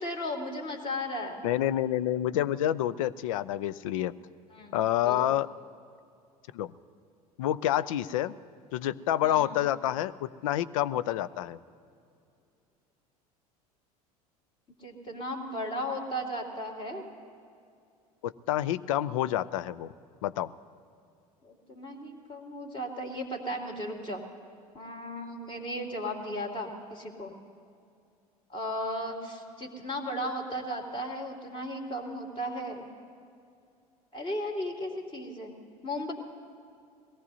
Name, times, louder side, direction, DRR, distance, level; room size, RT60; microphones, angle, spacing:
voice 1, 0.0-1.4 4.5-4.8 5.0-5.3 9.2-9.5 14.8-17.0 21.4-24.2 24.7-27.3 28.5-32.8 34.1-35.5 35.8-36.1, equal, 25° left, 1 dB, 2.6 m, -35 dB
voice 2, 1.4-4.1 4.7-5.5 6.5-6.7 7.4-8.4 8.7-11.6 18.2-19.9 20.2-20.5, left 12 dB, 60° left, 18 dB, 0.5 m, -28 dB
22.0 x 17.5 x 2.8 m, 2.5 s
figure-of-eight pair, 70°, 19 cm